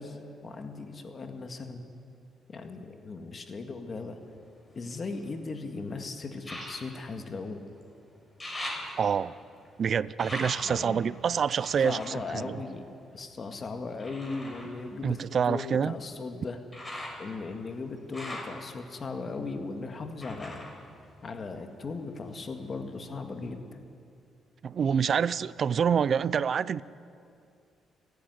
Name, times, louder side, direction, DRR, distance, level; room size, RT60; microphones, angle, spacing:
voice 1, 0.0-1.9 2.5-4.2 4.7-7.6 10.6-11.1 11.8-15.2 15.5-16.6 17.2-20.7 21.2-23.8, left 3 dB, 40° left, 6 dB, 1.8 m, -38 dB
sound 1, 4.2-5.6 6.4-7.9 8.2-13.3 14.0-21.8 22.1-23.0 23.5-23.6, left 1 dB, 15° left, 6.1 m, -43 dB
voice 2, 9.0-9.3 9.8-12.6 15.0-16.0 24.6-26.8, right 7 dB, 55° right, 19 dB, 0.5 m, -27 dB
29.0 x 10.5 x 9.4 m, 2.4 s
cardioid pair, 90°, 0 cm